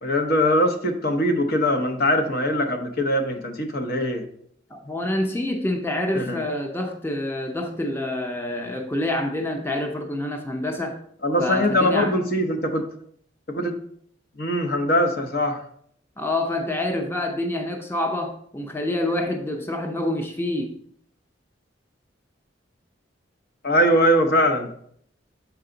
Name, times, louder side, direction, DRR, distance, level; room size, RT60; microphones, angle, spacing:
voice 1, 0.0-4.2 6.1-6.4 11.2-12.8 13.5-13.8 14.4-15.6 23.6-24.7, equal, 55° left, 6 dB, 0.8 m, -22 dB
voice 2, 4.7-11.0 11.4-12.1 16.2-20.7, left 1 dB, 10° left, 3 dB, 0.6 m, -27 dB
6.8 x 4.7 x 3.8 m, 0.64 s
head